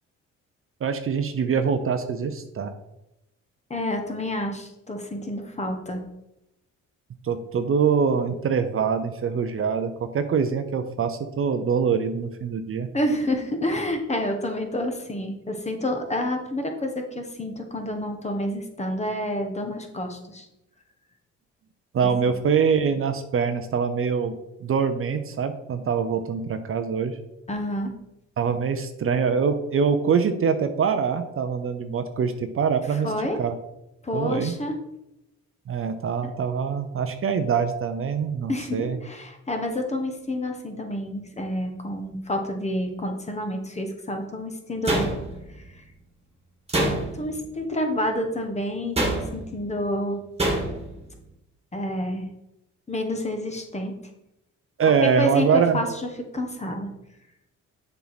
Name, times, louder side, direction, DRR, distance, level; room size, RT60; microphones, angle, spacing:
voice 1, 0.8-2.7 7.2-12.9 21.9-24.3 24.6-27.1 28.4-33.1 33.4-33.5 34.1-34.5 35.7-39.0 54.8-55.8, right 6 dB, 45° right, 8 dB, 0.7 m, -24 dB
voice 2, 3.7-6.0 12.9-20.5 27.5-27.9 32.9-33.4 34.0-34.8 36.2-36.3 38.5-45.1 45.8-45.9 47.1-50.2 51.7-52.3 52.9-53.9 55.0-56.9, left 1 dB, 20° left, 4 dB, 1.2 m, -29 dB
sound 1, 44.9-45.6 46.7-47.4 49.0-49.5 50.4-50.9, right 1 dB, 20° right, 1.7 m, -25 dB
7.1 x 4.6 x 4.1 m, 0.88 s
cardioid pair, 90°, 30 cm